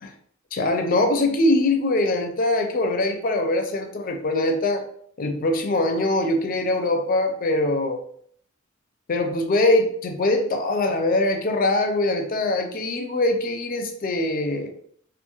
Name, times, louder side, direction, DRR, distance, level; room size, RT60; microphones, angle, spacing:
voice 1, 0.5-4.8 5.2-8.0 9.1-14.7, left 2 dB, 45° left, 5 dB, 0.4 m, -22 dB
2.4 x 2.3 x 2.9 m, 0.62 s
head